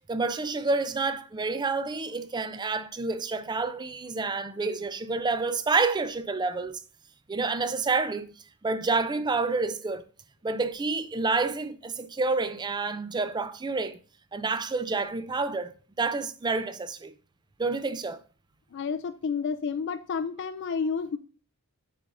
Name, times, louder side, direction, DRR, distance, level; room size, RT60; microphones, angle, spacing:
voice 1, 0.1-6.8 7.3-8.3 8.6-10.0 10.4-14.0 14.3-17.1 17.6-18.2, right 3 dB, 20° right, 0.4 m, -28 dB
voice 2, 18.7-21.2, left 5 dB, 55° left, 0.3 m, -30 dB
7.6 x 5.4 x 2.5 m
head